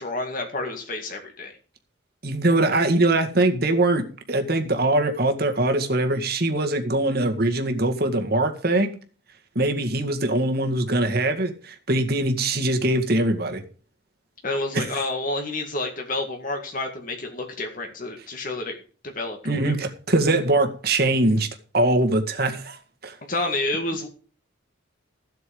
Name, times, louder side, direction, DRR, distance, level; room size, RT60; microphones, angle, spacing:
voice 1, 0.0-1.6 14.4-18.8 19.2-19.7 23.3-24.1, left 2 dB, 45° left, 2.0 m, -29 dB
voice 2, 2.2-8.9 9.6-13.6 14.7-14.8 19.5-21.5 21.7-22.8 23.0-23.1, right 2 dB, 50° right, 2.0 m, -22 dB
15.0 x 8.2 x 5.3 m
head